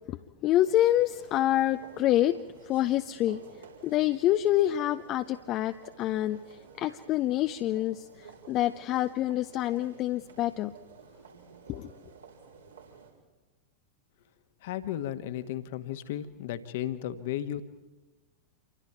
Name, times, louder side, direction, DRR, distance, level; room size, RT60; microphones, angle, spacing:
voice 1, 0.1-2.4 2.6-3.4 3.8-10.7 11.7-11.9, left 13 dB, 35° left, 10 dB, 0.7 m, -27 dB
sound 1, 0.6-13.1, right 5 dB, 75° right, 5.1 m, -52 dB
voice 2, 14.6-17.6, left 11 dB, 55° left, 10 dB, 1.5 m, -34 dB
28.0 x 24.0 x 4.6 m, 1.1 s
figure-of-eight pair, 90°, 0 cm